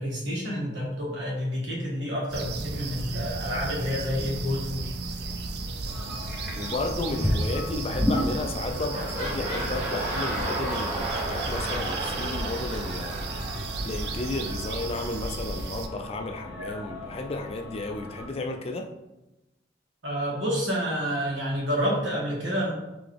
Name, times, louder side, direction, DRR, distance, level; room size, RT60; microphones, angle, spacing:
voice 1, 0.0-4.9 20.0-22.7, equal, 85° right, 1.5 m, -29 dB
sound 1, 2.3-15.9, right 3 dB, 60° right, 0.4 m, -34 dB
sound 2, 5.9-18.3, left 1 dB, 10° right, 0.8 m, -35 dB
voice 2, 6.5-13.2 13.8-18.9, left 2 dB, 30° left, 0.3 m, -33 dB
sound 3, 8.6-14.4 15.1-15.2, right 1 dB, 35° right, 1.3 m, -34 dB
3.8 x 3.3 x 3.3 m
head